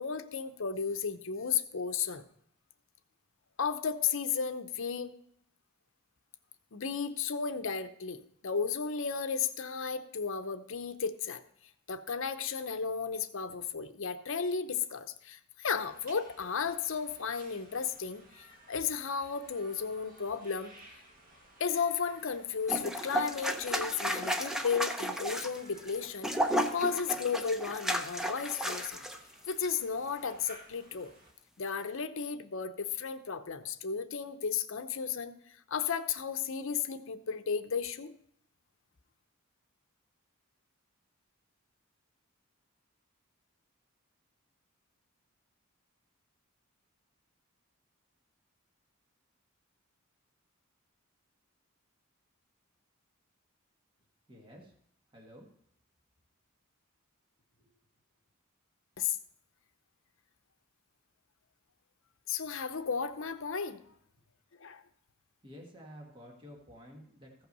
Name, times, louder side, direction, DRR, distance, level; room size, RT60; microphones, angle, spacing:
voice 1, 0.0-2.2 3.6-5.1 6.7-11.4 11.9-20.7 21.6-26.3 26.7-29.0 29.5-31.1 31.6-35.3 35.7-38.1 59.0-59.2 62.3-63.8 64.6-64.8, left 6 dB, 65° left, 10 dB, 0.7 m, -34 dB
sound 1, 15.7-31.3, right 1 dB, 40° right, 1.8 m, -58 dB
sound 2, 22.7-29.2 29.5-29.7, equal, ahead, 0.6 m, -33 dB
voice 2, 54.3-54.7 55.1-55.5 57.6-57.7 65.4-67.5, equal, 25° right, 0 dB, 1.6 m, -51 dB
15.0 x 5.8 x 5.3 m, 0.70 s
head